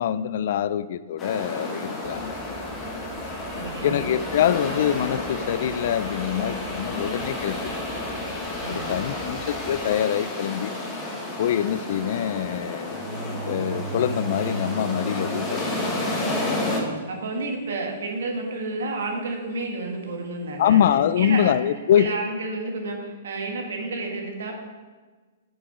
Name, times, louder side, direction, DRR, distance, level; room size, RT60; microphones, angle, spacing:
voice 1, 0.0-2.3 3.8-7.8 8.7-10.7 11.4-13.1 13.5-15.9 20.6-22.1, left 10 dB, 50° left, 16 dB, 0.3 m, -24 dB
sound 1, 1.2-16.8, left 2 dB, 15° left, 1.3 m, -31 dB
sound 2, 2.0-9.9, right 3 dB, 25° right, 1.0 m, -46 dB
voice 2, 3.6-4.0 8.6-8.9 16.7-20.8 21.2-21.5 22.0-24.5, right 3 dB, 85° right, 1 dB, 1.7 m, -31 dB
sound 3, 12.9-17.5 20.8-21.3, right 4 dB, 45° right, 2.3 m, -37 dB
7.6 x 6.1 x 4.9 m, 1.4 s
hypercardioid pair, 170°, 0 cm